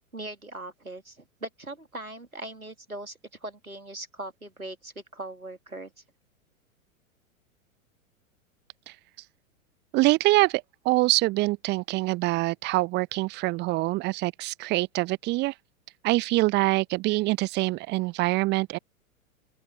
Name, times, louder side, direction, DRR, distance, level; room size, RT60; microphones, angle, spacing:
voice 1, 0.1-5.9, right 1 dB, 85° right, 2.8 m, -40 dB
voice 2, 9.9-15.5 16.0-18.8, right 20 dB, 25° right, 1.0 m, -25 dB
open air
figure-of-eight pair, 100°, 41 cm